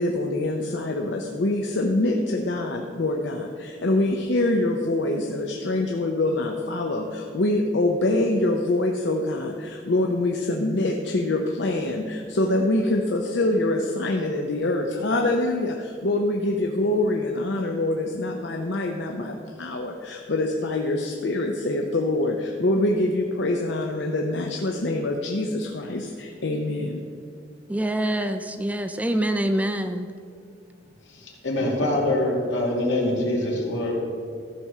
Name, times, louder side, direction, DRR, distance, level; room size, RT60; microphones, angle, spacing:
voice 1, 0.0-27.0, left 2 dB, 70° left, 2 dB, 0.7 m, -25 dB
voice 2, 27.7-30.1, right 1 dB, 10° right, 8 dB, 0.4 m, -25 dB
voice 3, 31.4-34.0, left 1 dB, 85° left, -1 dB, 2.3 m, -24 dB
14.0 x 4.9 x 6.6 m, 2.2 s
head